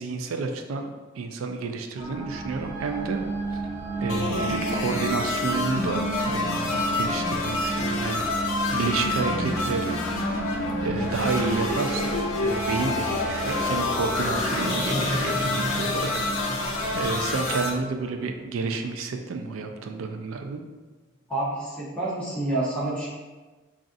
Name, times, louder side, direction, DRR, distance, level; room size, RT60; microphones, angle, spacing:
voice 1, 0.0-3.2 4.0-10.0 10.8-20.6, right 4 dB, 85° right, 5 dB, 0.4 m, -30 dB
sound 1, 2.0-18.2, right 1 dB, 35° right, 1.2 m, -32 dB
sound 2, 4.1-17.7, left 2 dB, 90° left, 0.5 m, -28 dB
sound 3, 12.0-19.8 20.2-20.3, right 1 dB, 10° right, 0.4 m, -37 dB
voice 2, 21.3-23.1, right 2 dB, 5° left, -8 dB, 0.8 m, -28 dB
4.0 x 2.5 x 2.5 m, 1.3 s
head